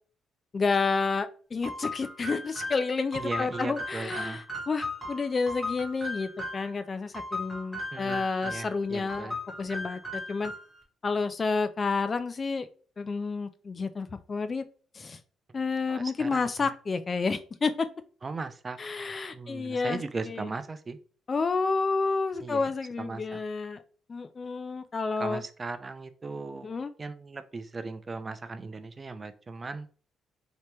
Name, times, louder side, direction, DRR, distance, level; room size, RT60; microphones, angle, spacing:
voice 1, 0.5-10.5 11.0-12.7 13.0-14.6 14.9-15.2 15.5-17.9 18.8-20.0 20.3-20.4 21.3-23.8 24.1-25.4 26.6-26.9, left 4 dB, 35° left, 11 dB, 0.3 m, -30 dB
sound 1, 1.6-6.7 7.1-8.8 9.1-10.8, left 2 dB, 15° left, 1.5 m, -37 dB
voice 2, 3.1-4.4 7.9-9.4 15.5-15.6 15.9-16.7 18.2-18.8 19.3-21.0 22.4-23.4 25.2-29.9, right 3 dB, 30° right, 11 dB, 0.4 m, -38 dB
2.9 x 2.9 x 3.3 m, 0.40 s
cardioid pair, 90°, 0 cm